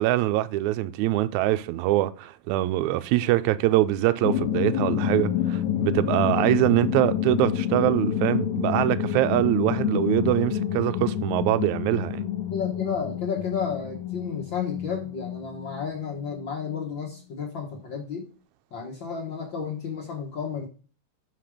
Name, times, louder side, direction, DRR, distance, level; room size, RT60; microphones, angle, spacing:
voice 1, 0.0-12.3, right 15 dB, 80° right, 1.7 m, -23 dB
sound 1, 4.2-16.8, left 9 dB, 80° left, 1.7 m, -28 dB
voice 2, 12.5-18.3 18.7-20.7, left 6 dB, 60° left, 1.2 m, -32 dB
5.9 x 5.3 x 4.9 m
omnidirectional pair, 3.8 m